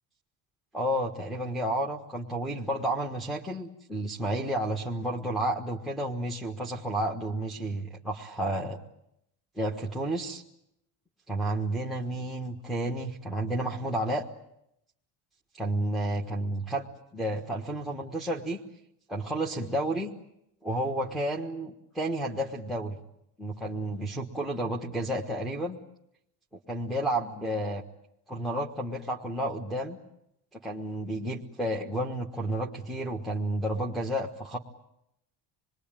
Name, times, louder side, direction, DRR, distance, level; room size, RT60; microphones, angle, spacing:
voice 1, 0.7-8.8 9.6-10.4 11.3-14.2 15.6-16.9 17.1-18.6 19.1-20.1 20.6-23.0 23.4-25.8 26.7-27.8 28.3-30.0 30.5-34.6, right 1 dB, ahead, -2 dB, 1.4 m, -31 dB
27.5 x 21.0 x 9.0 m, 0.81 s
cardioid pair, 155°, 45 cm